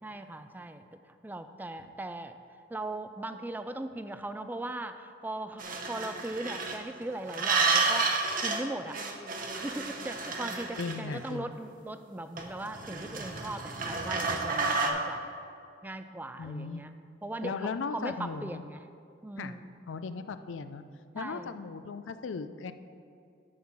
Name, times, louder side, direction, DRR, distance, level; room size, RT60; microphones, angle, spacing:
voice 1, 0.0-2.4 2.7-8.1 8.4-9.0 9.3-15.3 15.8-16.9 17.2-18.8 19.2-19.7 21.1-21.6, right 1 dB, 10° right, 9 dB, 0.3 m, -39 dB
sound 1, 5.6-6.8 7.3-8.6 8.9-11.3 12.4-14.9, right 4 dB, 45° right, 0.9 m, -30 dB
voice 2, 10.8-11.5 16.4-16.8 17.4-18.6 19.4-19.5 19.9-20.8 21.1-22.7, left 4 dB, 85° left, 11 dB, 0.4 m, -37 dB
11.0 x 3.9 x 7.2 m, 2.4 s
head